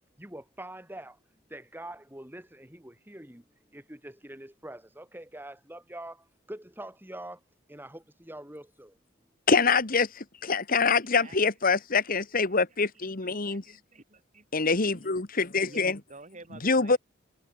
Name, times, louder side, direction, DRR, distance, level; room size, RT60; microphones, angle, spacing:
voice 1, 0.2-1.2 1.5-3.4 3.7-7.4 7.7-9.0, right 1 dB, 10° right, 4.1 m, -44 dB
voice 2, 9.5-13.6 14.5-16.0 16.6-17.0, left 4 dB, 45° left, 1.6 m, -25 dB
voice 3, 11.1-11.4 12.9-14.5 14.9-15.1 15.6-17.0, right 3 dB, 40° right, 4.0 m, -51 dB
head